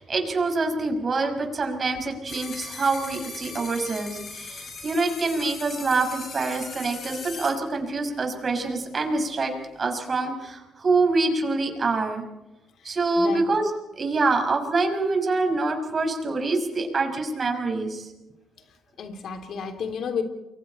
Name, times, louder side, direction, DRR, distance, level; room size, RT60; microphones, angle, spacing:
voice 1, 0.0-9.5 9.8-12.2 12.8-13.7 14.0-18.1, right 3 dB, 40° right, 4 dB, 5.9 m, -25 dB
sound 1, 2.3-7.5, left 4 dB, 45° left, 6.6 m, -39 dB
voice 2, 12.8-13.4 19.0-20.2, left 6 dB, 65° left, 6 dB, 3.2 m, -32 dB
29.5 x 23.5 x 4.4 m, 1.0 s
cardioid pair, 90°, 0 cm